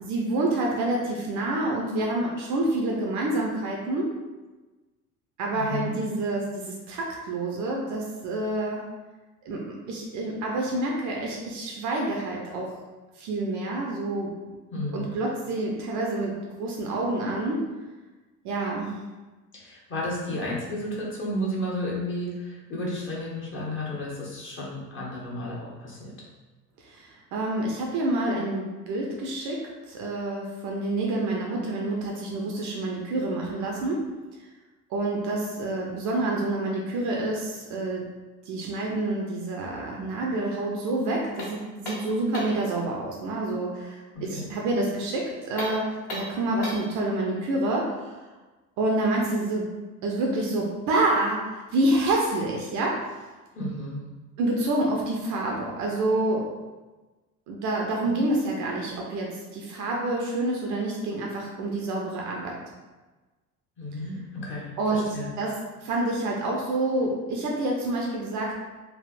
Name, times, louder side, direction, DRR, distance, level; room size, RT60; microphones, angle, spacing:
voice 1, 0.0-4.1 5.4-8.8 9.5-12.7 13.2-14.3 14.9-17.7 18.4-19.0 26.8-34.1 34.9-38.1 38.5-48.2 48.8-49.7 50.0-53.1 54.4-56.5 57.5-62.6 64.8-68.6, right 2 dB, 40° right, -1 dB, 0.6 m, -28 dB
voice 2, 5.5-6.0 14.7-15.0 19.5-26.1 44.1-44.5 53.6-54.0 58.0-58.2 63.8-65.3, left 1 dB, 25° left, -5 dB, 0.9 m, -32 dB
sound 1, 41.4-42.7 45.5-47.0, left 1 dB, 50° left, 1.3 m, -36 dB
3.4 x 2.5 x 2.5 m, 1.2 s
figure-of-eight pair, 60°, 47 cm